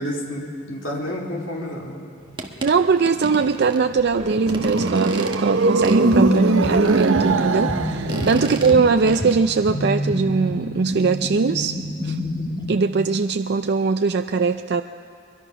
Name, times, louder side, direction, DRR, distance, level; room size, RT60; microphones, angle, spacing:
voice 1, 0.0-2.1 7.7-7.8 8.1-8.4, equal, 65° left, -2 dB, 3.1 m, -30 dB
sound 1, 2.2-9.3, right 2 dB, 25° right, 1.3 m, -36 dB
voice 2, 2.6-11.8 12.0-12.2 12.7-14.8, right 4 dB, 50° right, 8 dB, 0.4 m, -21 dB
sound 2, 3.8-9.2, right 3 dB, 75° right, 0.8 m, -22 dB
sound 3, 5.8-12.6, equal, 25° left, 2.2 m, -27 dB
23.0 x 22.0 x 5.9 m, 2.3 s
head